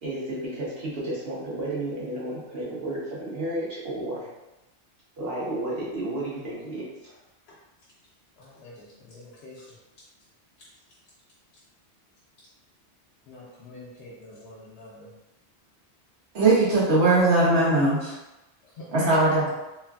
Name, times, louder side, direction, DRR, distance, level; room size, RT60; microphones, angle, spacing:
voice 1, 0.0-4.3 5.2-7.2, right 1 dB, 65° right, -6 dB, 1.1 m, -32 dB
voice 2, 8.4-9.8 10.6-10.7 13.3-15.1 18.6-18.9, left 2 dB, 75° left, -7 dB, 0.8 m, -46 dB
voice 3, 16.3-18.1 18.9-19.5, right 2 dB, 85° right, -5 dB, 1.2 m, -20 dB
3.0 x 2.4 x 2.3 m, 0.99 s
omnidirectional pair, 1.1 m